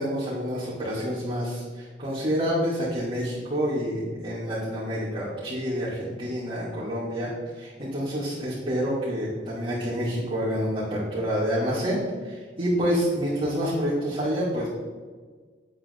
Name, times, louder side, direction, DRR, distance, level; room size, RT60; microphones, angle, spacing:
voice 1, 0.0-14.7, equal, 30° right, -11 dB, 3.1 m, -28 dB
10.0 x 8.7 x 4.1 m, 1.5 s
head